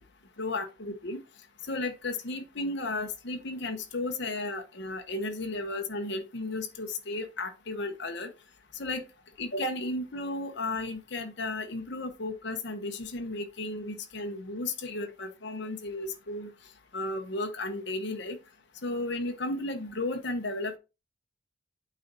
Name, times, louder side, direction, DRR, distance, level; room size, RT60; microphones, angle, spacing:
voice 1, 0.4-1.2 1.7-8.3 8.8-9.0 9.4-16.5 16.9-18.4 18.8-20.8, left 2 dB, 60° left, 1.1 m, -34 dB
8.6 x 4.2 x 4.1 m
head